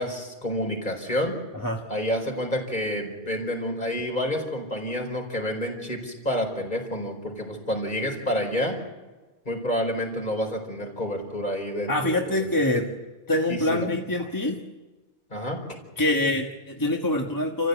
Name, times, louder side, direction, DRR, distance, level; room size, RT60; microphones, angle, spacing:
voice 1, 0.0-1.3 1.9-8.8 9.4-12.8 13.5-13.9 15.3-15.8, equal, 40° left, 1 dB, 4.8 m, -29 dB
voice 2, 11.9-12.9 13.3-14.6 16.0-17.7, left 1 dB, 15° left, 1 dB, 1.3 m, -25 dB
28.5 x 15.0 x 8.1 m, 1.2 s
omnidirectional pair, 1.2 m